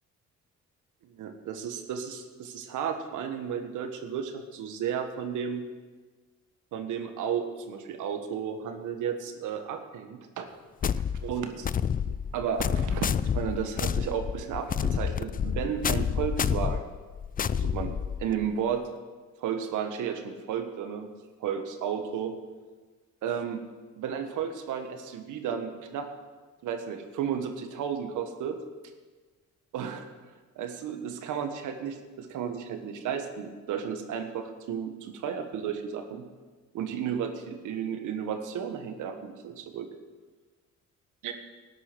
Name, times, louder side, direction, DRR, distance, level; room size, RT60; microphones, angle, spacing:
voice 1, 1.0-5.6 6.7-10.5 11.2-11.7 12.1-17.0 17.5-18.8 19.4-21.1 21.4-22.3 23.2-23.6 24.0-26.1 26.6-28.6 29.7-30.0 30.5-36.2 36.7-39.9 41.2-41.3, right 8 dB, 85° right, 7 dB, 1.5 m, -33 dB
sound 1, 10.8-18.5, left 7 dB, 30° left, 0.4 m, -29 dB
13.5 x 9.7 x 6.2 m, 1.4 s
cardioid pair, 90°, 30 cm